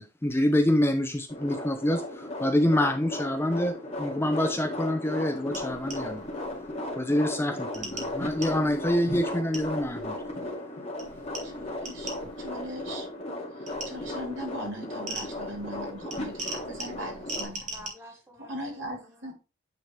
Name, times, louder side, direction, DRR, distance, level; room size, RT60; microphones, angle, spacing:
voice 1, 0.0-6.2 7.0-10.1, left 1 dB, 10° left, 0.6 m, -26 dB
sound 1, 1.3-17.4, left 1 dB, 35° left, 2.1 m, -36 dB
sound 2, 5.5-7.0 7.7-10.6 11.0-13.2 13.7-17.9, right 2 dB, 40° right, 2.4 m, -42 dB
voice 2, 11.4-12.1 12.4-13.1 13.9-17.6 18.5-19.3, right 1 dB, 75° right, 3.6 m, -39 dB
voice 3, 17.4-19.3, equal, 15° right, 1.5 m, -50 dB
9.3 x 3.8 x 3.2 m
head